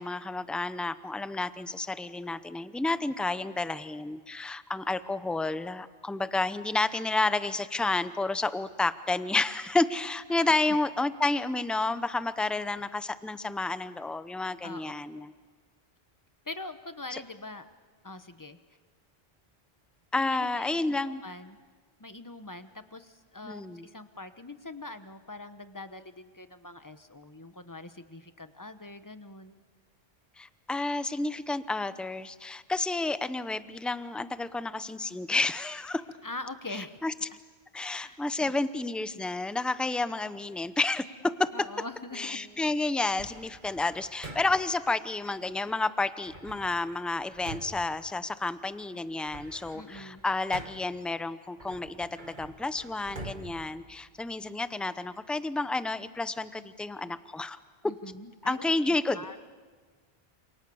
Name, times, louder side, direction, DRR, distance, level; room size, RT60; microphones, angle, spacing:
voice 1, 0.0-15.3 17.1-17.2 20.1-21.2 23.4-23.9 30.4-36.0 37.0-37.1 37.7-41.5 42.1-57.6 58.5-59.2, left 2 dB, ahead, 12 dB, 0.7 m, -30 dB
voice 2, 10.3-10.8 14.6-15.3 16.4-17.7 18.0-18.6 20.2-21.6 22.0-29.6 36.2-37.0 38.0-38.5 41.5-42.4 49.7-50.2 57.8-59.4, left 2 dB, 20° left, 10 dB, 1.1 m, -43 dB
Bass guitar, 42.1-45.8, right 1 dB, 85° left, 5.1 m, -60 dB
sound 1, 43.2-44.8 46.3-48.7 49.1-51.0 51.6-54.6, right 2 dB, 50° right, 2.1 m, -46 dB
28.5 x 28.5 x 7.1 m, 1.5 s
omnidirectional pair, 1.0 m